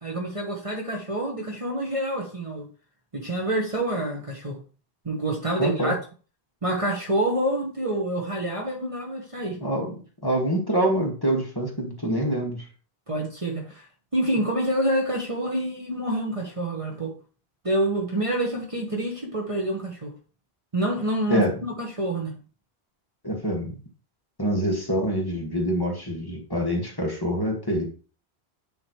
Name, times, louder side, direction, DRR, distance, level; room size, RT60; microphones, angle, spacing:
voice 1, 0.0-2.7 3.1-4.6 5.0-6.0 6.6-9.6 13.1-13.9 14.1-17.1 17.6-20.1 20.7-22.4, right 1 dB, 30° right, 1.5 m, -27 dB
voice 2, 5.6-5.9 9.6-10.0 10.2-12.6 21.3-21.5 23.2-23.8 24.4-27.8, equal, 20° left, 1.9 m, -25 dB
9.4 x 5.1 x 3.1 m
omnidirectional pair, 1.1 m